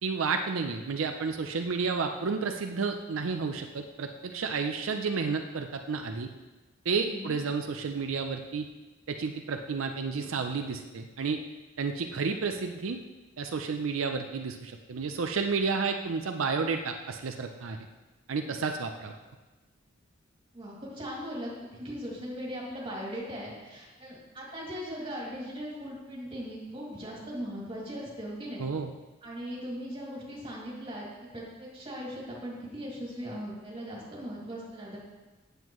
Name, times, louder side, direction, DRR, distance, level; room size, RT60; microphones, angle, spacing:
voice 1, 0.0-6.3 6.9-8.7 9.1-11.4 11.8-13.0 13.4-17.8 18.3-19.2 28.6-28.9, right 4 dB, 85° right, 5 dB, 0.5 m, -31 dB
voice 2, 7.0-7.4 20.5-28.6 29.2-31.1 31.3-35.0, equal, 30° right, -5 dB, 2.4 m, -39 dB
9.1 x 7.8 x 3.1 m, 1.2 s
head